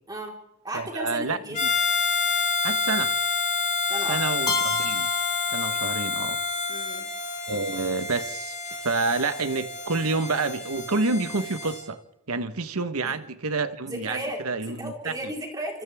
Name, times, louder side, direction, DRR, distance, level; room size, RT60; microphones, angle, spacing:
voice 1, 0.1-0.4 0.6-1.7 3.9-4.2 6.7-7.1 13.0-13.2 13.8-15.8, right 1 dB, 20° right, 4.4 m, -35 dB
voice 2, 0.7-1.7 2.6-3.1 4.1-5.1 5.5-6.4 7.5-12.0 12.3-15.1, right 3 dB, 80° right, 1.3 m, -28 dB
Harmonica, 1.5-11.8, left 5 dB, 35° left, 5.6 m, -28 dB
Keyboard (musical), 4.5-6.4, left 1 dB, 20° left, 1.6 m, -32 dB
28.0 x 26.0 x 3.6 m
head